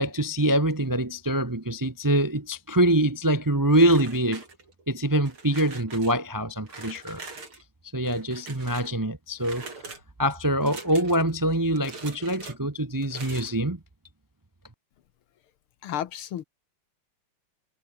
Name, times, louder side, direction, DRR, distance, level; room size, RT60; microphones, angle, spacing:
voice 1, 0.0-4.4 4.9-7.2 7.9-9.7 10.2-13.8, right 1 dB, 25° right, 0.4 m, -24 dB
sound 1, 3.7-4.8 5.2-6.1 6.7-7.6 8.0-8.9 9.4-10.0 10.6-11.3 11.7-12.6 13.0-13.6, right 3 dB, 85° right, 5.9 m, -43 dB
voice 2, 15.8-16.4, left 10 dB, 90° left, 2.1 m, -32 dB
omnidirectional pair, 2.3 m